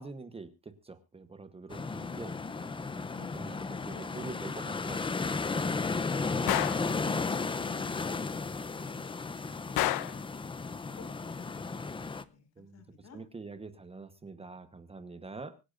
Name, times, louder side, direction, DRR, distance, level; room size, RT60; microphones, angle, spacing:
voice 1, 0.0-5.1 12.6-12.8 13.1-15.6, right 3 dB, 15° right, 10 dB, 1.0 m, -45 dB
sound 1, 1.7-12.2, left 4 dB, 15° left, 0.6 m, -34 dB
Gunshot gunfire, 6.5-6.9 9.8-10.2, left 15 dB, 80° left, 0.8 m, -29 dB
voice 2, 6.9-10.1 11.0-13.2, left 4 dB, 45° left, 5 dB, 5.2 m, -52 dB
25.0 x 10.0 x 2.5 m, 0.27 s
cardioid pair, 175°, 37 cm